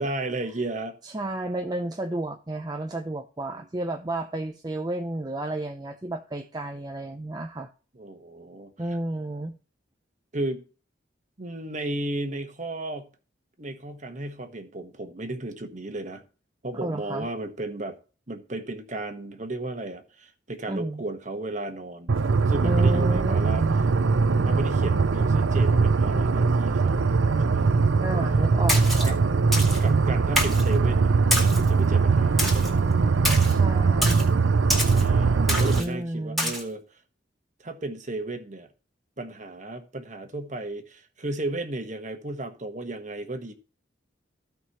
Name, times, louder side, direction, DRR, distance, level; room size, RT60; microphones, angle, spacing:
voice 1, 0.0-0.9 3.5-3.7 7.9-9.0 10.3-10.6 11.4-13.1 13.6-16.2 16.6-18.0 18.3-22.1 22.4-23.6 24.4-27.8 29.0-29.2 29.8-31.2 31.6-32.8 34.7-37.0 37.6-38.7 39.2-43.5, right 2 dB, 40° right, 1.3 m, -34 dB
voice 2, 1.0-7.7 8.8-9.6 16.7-17.3 20.7-21.0 22.6-23.8 28.0-29.1 33.4-34.4 35.8-36.5, right 1 dB, 20° right, 0.6 m, -32 dB
sound 1, 22.1-35.8, right 4 dB, 80° right, 0.6 m, -21 dB
Splash splatter, 28.7-29.1 29.5-29.8 30.4-30.7 31.3-31.7 32.4-32.7 33.2-33.5 34.0-34.2 34.7-35.0 35.5-35.8 36.4-36.6, equal, ahead, 2.2 m, -26 dB
15.5 x 5.3 x 3.0 m
head